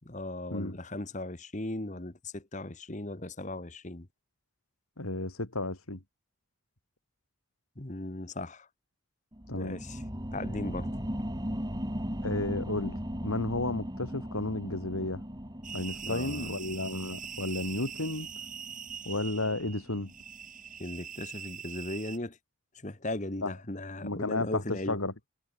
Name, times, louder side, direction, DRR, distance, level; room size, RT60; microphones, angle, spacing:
voice 1, 0.0-4.1 7.8-8.7 9.5-10.0 10.3-10.9 16.0-16.6 20.8-22.4 22.8-25.0, left 1 dB, 35° left, 1.5 m, -37 dB
voice 2, 5.0-6.0 9.5-9.8 12.2-12.9 13.2-15.2 15.7-18.3 19.1-20.1 23.4-23.5 24.0-25.1, left 2 dB, 90° left, 3.6 m, -32 dB
sound 1, 9.3-20.5 20.9-21.0, equal, 20° right, 5.5 m, -38 dB
sound 2, 15.6-22.2, right 8 dB, 40° right, 7.0 m, -43 dB
head